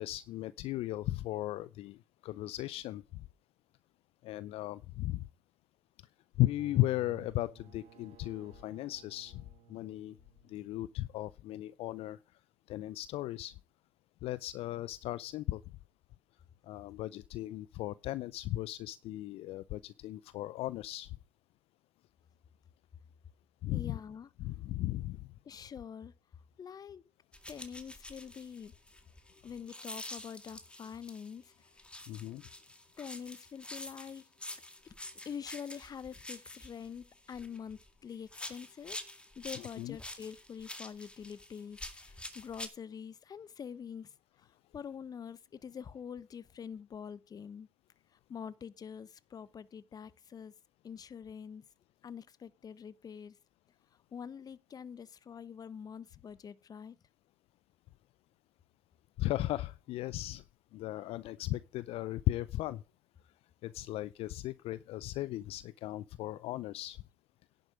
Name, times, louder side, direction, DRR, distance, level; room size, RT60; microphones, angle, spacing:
voice 1, 0.0-3.3 4.2-5.2 6.4-9.4 9.7-10.2 10.5-12.2 12.7-13.5 14.2-15.6 16.6-21.2 23.6-24.0 24.4-25.2 32.1-32.4 39.8-40.0 59.2-60.4 60.7-62.8 63.6-67.0, left 16 dB, 50° left, 0.5 m, -36 dB
sound 1, 6.4-11.9, right 9 dB, 50° right, 3.8 m, -57 dB
voice 2, 23.7-24.3 25.4-26.1 26.6-27.0 27.5-28.7 29.4-31.7 33.0-34.3 34.8-35.0 35.2-39.0 39.4-44.5 44.7-47.7 48.1-50.5 50.8-51.6 52.0-53.4 54.1-57.0, left 7 dB, 30° left, 0.9 m, -45 dB
sound 2, 27.3-31.3 31.8-37.9 38.3-42.7, left 1 dB, 10° left, 2.2 m, -47 dB
11.0 x 7.6 x 5.0 m
hypercardioid pair, 75°, 12 cm